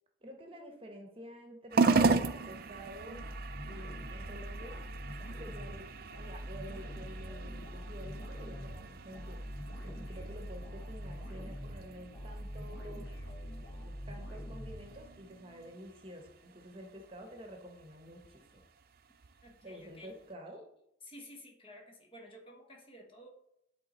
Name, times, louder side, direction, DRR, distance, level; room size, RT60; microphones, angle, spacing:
voice 1, 0.2-3.2 3.6-5.9 6.2-13.1 13.7-18.6 19.6-20.6, equal, 30° right, 3 dB, 1.0 m, -50 dB
sound 1, 1.7-20.3, right 4 dB, 50° right, 0.4 m, -37 dB
sound 2, 3.1-15.4, equal, 75° left, 1.7 m, -44 dB
voice 2, 19.4-20.1 21.0-23.3, equal, 30° left, 1 dB, 1.2 m, -52 dB
11.0 x 3.6 x 4.2 m, 0.79 s
head